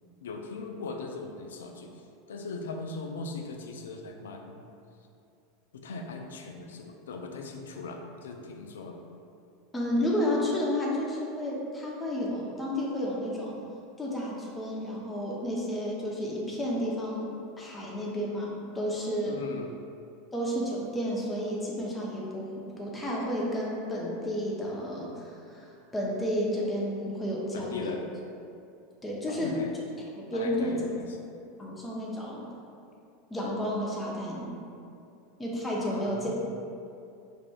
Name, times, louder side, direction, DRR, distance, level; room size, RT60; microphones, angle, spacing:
voice 1, 0.2-2.0 2.3-4.6 5.7-9.0 19.3-19.7 27.5-28.1 29.3-29.8 30.3-31.3 35.8-36.5, left 3 dB, 80° left, 3 dB, 0.3 m, -39 dB
voice 2, 9.7-13.5 14.0-19.4 20.3-22.5 22.8-28.0 29.0-29.8 30.2-30.8 31.6-32.5 33.3-34.5 35.4-36.3, equal, 15° left, -4 dB, 0.7 m, -31 dB
4.8 x 2.5 x 2.3 m, 2.6 s
hypercardioid pair, 95°, 0 cm